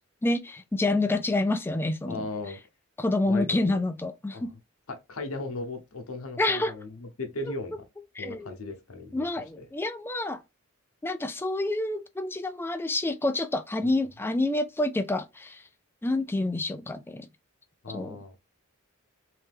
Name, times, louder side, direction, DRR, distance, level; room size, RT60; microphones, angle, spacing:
voice 1, 0.2-2.3 3.0-4.5 6.4-6.7 8.2-8.5 9.1-10.4 11.0-15.6 16.0-17.3 17.9-18.2, left 2 dB, 10° left, 0.3 m, -28 dB
voice 2, 2.1-2.6 3.3-3.8 4.3-4.5 4.9-7.8 8.2-9.3 9.6-9.7 13.8-13.9 17.8-18.4, left 2 dB, 80° left, 0.9 m, -37 dB
3.2 x 2.8 x 3.4 m
head